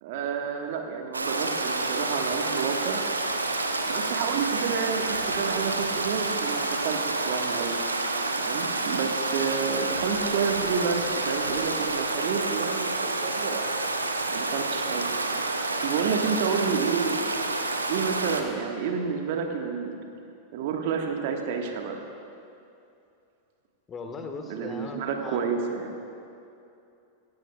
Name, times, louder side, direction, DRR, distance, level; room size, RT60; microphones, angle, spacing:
voice 1, 0.0-3.0 3.9-7.8 8.4-13.6 14.3-15.1 15.8-17.3 17.9-20.0 20.5-22.1 24.5-25.9, right 6 dB, 50° right, 3 dB, 1.5 m, -30 dB
Stream, 1.1-18.4, right 2 dB, 80° right, 1.0 m, -29 dB
voice 2, 23.9-25.6, left 3 dB, 25° left, 5 dB, 1.5 m, -38 dB
26.5 x 15.0 x 2.4 m, 2.6 s
figure-of-eight pair, 90°, 0 cm